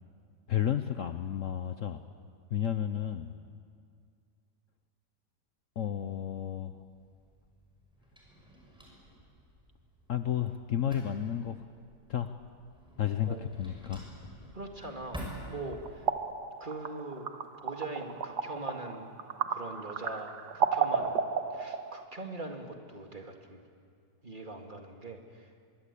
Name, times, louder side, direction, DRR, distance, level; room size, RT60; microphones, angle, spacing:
voice 1, 0.5-2.0 2.5-3.3 5.8-6.8 10.1-11.5 12.1-12.4 13.0-14.1, left 10 dB, 60° left, 9 dB, 1.0 m, -32 dB
Drawer open or close, 6.7-16.1, equal, 5° right, 6.0 m, -49 dB
voice 2, 13.1-13.5 14.5-16.1 16.6-17.3 17.6-19.1 19.5-21.2 21.5-23.6 24.2-25.5, right 2 dB, 30° right, 3 dB, 2.2 m, -42 dB
sound 1, 15.4-22.0, right 6 dB, 75° right, 1.8 m, -33 dB
25.0 x 22.0 x 8.4 m, 2.2 s
omnidirectional pair, 1.8 m